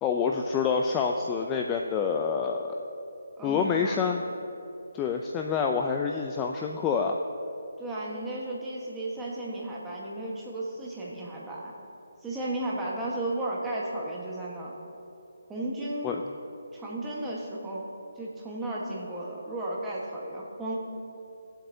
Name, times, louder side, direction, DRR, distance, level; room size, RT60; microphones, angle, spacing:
voice 1, 0.0-2.8 3.4-4.2 4.9-7.2 16.0-16.2, left 6 dB, 15° left, 2 dB, 0.4 m, -27 dB
voice 2, 3.4-4.0 7.8-11.7 12.2-14.7 15.5-16.1 16.7-17.8 18.2-20.8, right 1 dB, 10° right, -5 dB, 1.3 m, -34 dB
20.0 x 7.6 x 2.7 m, 2.8 s
hypercardioid pair, 160°, 0 cm